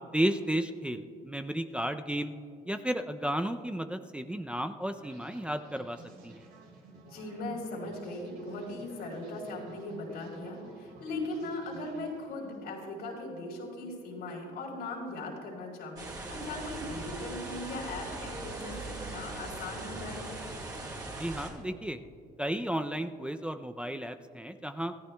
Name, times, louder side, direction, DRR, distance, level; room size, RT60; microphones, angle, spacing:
voice 1, 0.1-2.3 2.7-6.0 6.2-6.4 21.0-22.0 22.4-24.9, right 1 dB, 5° right, 6 dB, 0.5 m, -33 dB
sound 1, 5.0-12.7, right 4 dB, 85° right, 3.4 m, -53 dB
voice 2, 7.0-20.3, left 2 dB, 80° left, -1 dB, 4.0 m, -39 dB
sound 2, 16.0-21.5, right 2 dB, 20° right, 3.7 m, -40 dB
25.5 x 14.5 x 2.3 m, 2.3 s
cardioid pair, 110°, 17 cm